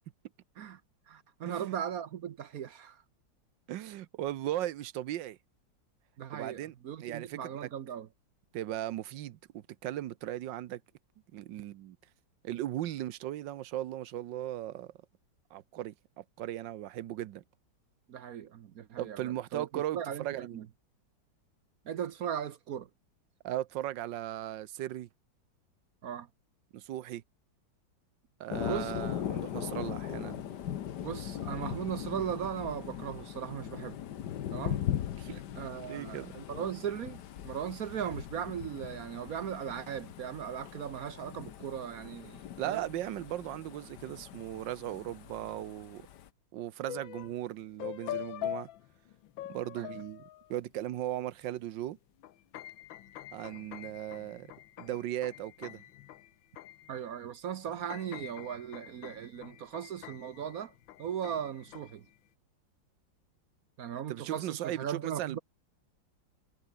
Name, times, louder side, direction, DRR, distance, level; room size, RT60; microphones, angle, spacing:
voice 1, 1.1-3.0 6.2-8.1 18.1-20.7 21.9-22.9 26.0-26.3 28.7-28.9 31.0-34.0 34.5-34.9 35.5-42.9 49.7-49.9 56.9-60.7 61.0-62.0 63.8-65.4, right 9 dB, 60° right, 1.1 m, -38 dB
voice 2, 3.7-5.4 6.3-6.7 7.0-7.7 8.5-10.8 11.3-12.0 12.4-14.9 15.5-17.4 19.0-20.6 23.4-25.1 26.7-27.2 28.4-30.4 35.2-35.4 35.8-36.3 42.6-46.1 46.5-48.7 49.5-50.2 50.5-52.0 53.3-54.5 54.8-55.8 64.1-65.4, right 13 dB, 75° right, 1.4 m, -37 dB
Thunder, 28.5-46.3, left 10 dB, 65° left, 1.6 m, -40 dB
sound 1, 46.9-47.5 47.8-50.7 51.5-51.6 51.9-57.3 57.6-62.1, left 13 dB, 80° left, 1.6 m, -44 dB
omnidirectional pair, 2.1 m